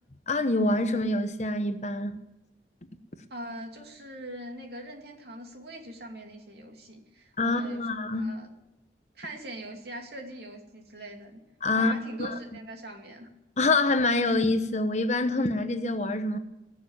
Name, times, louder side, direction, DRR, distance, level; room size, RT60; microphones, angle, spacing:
voice 1, 0.3-2.2 7.4-8.3 11.6-12.4 13.6-16.4, left 2 dB, 40° left, 1.0 m, -26 dB
voice 2, 3.3-7.8 8.1-8.5 9.1-11.4 11.7-13.3, right 1 dB, 65° right, 2.8 m, -42 dB
20.5 x 7.1 x 9.0 m
head